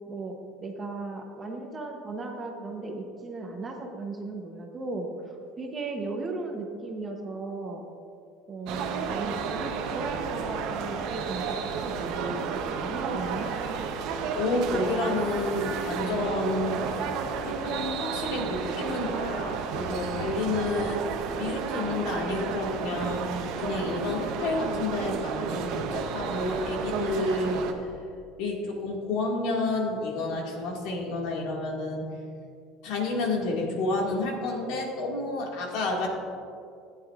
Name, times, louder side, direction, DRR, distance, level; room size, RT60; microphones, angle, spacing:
voice 1, 0.1-7.8 8.5-13.5, right 3 dB, 15° right, 2 dB, 0.8 m, -36 dB
sound 1, 8.7-27.7, right 6 dB, 55° right, 0.7 m, -32 dB
voice 2, 14.3-17.1 17.4-27.6 28.4-32.1 32.8-36.1, left 2 dB, 60° left, -1 dB, 1.9 m, -30 dB
15.0 x 9.2 x 2.4 m, 2.4 s
cardioid pair, 175°, 0 cm